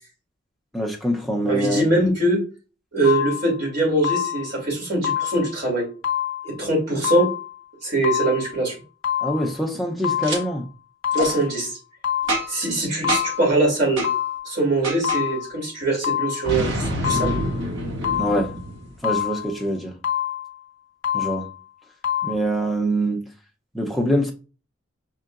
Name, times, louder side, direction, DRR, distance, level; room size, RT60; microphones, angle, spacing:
voice 1, 0.7-2.1 9.2-10.7 18.2-18.5 19.0-19.9 21.1-21.5 22.2-23.2 23.7-24.3, equal, ahead, 0.7 m, -24 dB
voice 2, 1.4-2.4 2.9-5.8 6.4-7.3 7.8-8.7 11.1-11.7 12.5-14.0 14.4-17.3, right 2 dB, 55° right, 2.8 m, -22 dB
sound 1, 3.0-3.6 4.0-4.6 5.0-5.6 6.0-6.6 7.0-7.6 8.0-8.6 9.0-9.6 10.0-10.6 11.0-11.6 12.0-12.6 13.0-13.6 14.0-14.6 15.0-15.6 16.0-16.6 17.0-17.6 18.0-18.6 19.0-19.6 20.0-20.6 21.0-21.6 22.0-22.3, left 10 dB, 75° left, 0.5 m, -27 dB
Boom, 10.2-10.4 11.1-11.3 12.3-12.7 13.1-13.4 14.0-14.1 14.8-15.2 16.4-19.1, right 1 dB, 75° right, 1.4 m, -27 dB
5.6 x 3.7 x 2.5 m
head